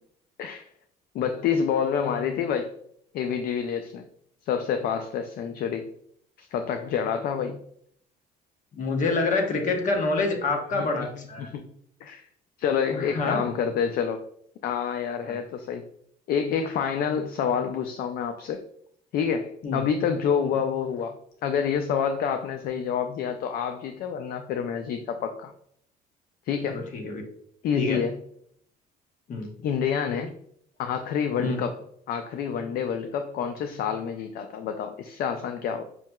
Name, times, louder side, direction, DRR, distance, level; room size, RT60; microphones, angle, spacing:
voice 1, 1.1-2.7 3.1-4.0 4.4-5.9 6.4-7.6 10.7-11.7 12.0-12.2 12.6-14.2 14.6-15.9 16.3-18.6 19.1-21.2 21.4-25.5 26.5-26.9 27.6-28.2 29.6-30.3 30.8-31.8 32.1-35.8, left 7 dB, 65° left, 7 dB, 0.4 m, -28 dB
voice 2, 8.7-11.5 12.9-13.4 15.2-15.3 19.6-19.8 26.7-27.2 27.7-28.0 29.3-29.5 31.4-31.6, left 3 dB, 50° left, 3 dB, 1.0 m, -27 dB
5.6 x 2.7 x 2.3 m, 0.67 s
cardioid pair, 110°, 17 cm